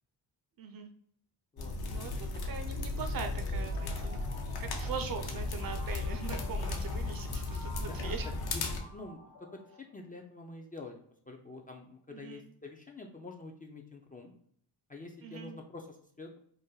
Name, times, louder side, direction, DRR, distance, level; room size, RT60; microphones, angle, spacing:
voice 1, 0.6-0.9 1.8-4.2 4.6-8.3 12.1-12.4 15.2-15.5, right 6 dB, 55° right, 7 dB, 0.6 m, -41 dB
voice 2, 1.5-2.0 7.6-8.2 8.5-9.6 9.9-14.3 14.9-16.4, left 3 dB, 20° left, 1 dB, 0.3 m, -47 dB
sound 1, 1.6-8.8, left 2 dB, 60° left, 0.6 m, -35 dB
sound 2, 3.3-10.2, left 1 dB, 90° left, 0.9 m, -52 dB
2.6 x 2.1 x 3.8 m, 0.63 s
cardioid pair, 95°, 42 cm